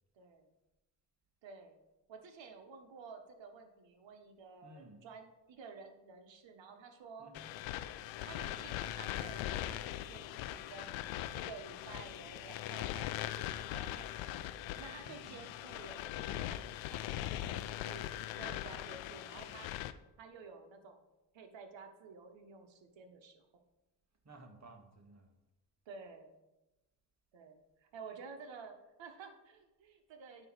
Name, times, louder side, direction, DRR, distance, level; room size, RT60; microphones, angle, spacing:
voice 1, 0.2-0.5 1.4-1.8 2.1-7.3 8.2-11.0 11.3-14.4 14.8-16.6 16.9-18.1 18.4-19.7 20.2-21.0 21.3-23.6 25.8-26.4 27.3-30.5, right 5 dB, 60° right, 5 dB, 1.4 m, -52 dB
voice 2, 4.6-5.1 7.2-7.5 15.0-15.5 24.2-25.3, right 1 dB, 35° right, 4 dB, 1.7 m, -56 dB
sound 1, 7.3-19.9, left 13 dB, 65° left, 0.6 m, -41 dB
8.9 x 3.2 x 6.0 m, 1.0 s
hypercardioid pair, 45°, 49 cm